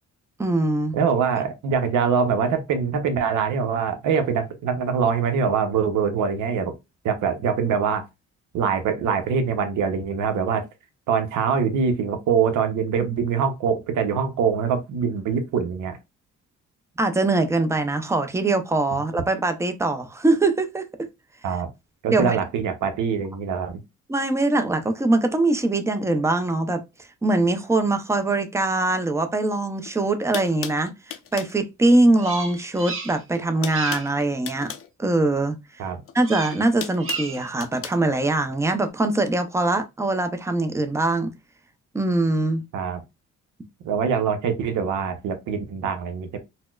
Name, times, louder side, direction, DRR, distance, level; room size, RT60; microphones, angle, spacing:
voice 1, 0.4-1.0 17.0-20.8 22.1-22.4 24.1-26.8 27.2-34.7 35.0-35.6 36.1-41.3 41.9-42.6, right 2 dB, 10° right, 0.5 m, -22 dB
voice 2, 0.9-6.7 7.0-8.0 8.5-10.6 11.1-16.0 21.4-21.7 22.0-23.8 35.8-36.0 42.7-43.0 43.8-46.4, right 6 dB, 80° right, 0.8 m, -23 dB
sound 1, 29.8-29.9 30.3-31.6 32.8-33.1 33.3-34.9 36.1-38.0, left 9 dB, 50° left, 0.5 m, -36 dB
Bird vocalization bird call bird song, 32.2-33.4 33.6-34.2 36.2-36.7 37.0-37.5, right 4 dB, 45° right, 0.9 m, -34 dB
4.1 x 2.1 x 2.3 m
cardioid pair, 90°, 30 cm